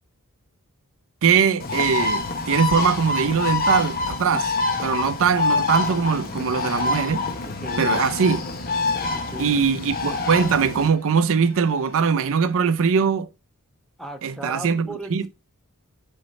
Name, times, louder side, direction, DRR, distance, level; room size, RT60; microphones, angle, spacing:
voice 1, 1.2-4.5 4.8-7.2 7.8-8.5 9.4-13.3 14.2-15.2, right 6 dB, 65° right, 0.5 m, -21 dB
Bird, 1.6-10.9, left 3 dB, 40° left, 0.9 m, -26 dB
sound 1, 5.3-12.5, left 1 dB, 70° left, 2.0 m, -48 dB
voice 2, 7.4-7.9 9.1-9.6 14.0-15.3, right 1 dB, ahead, 0.9 m, -37 dB
6.6 x 3.9 x 4.1 m
head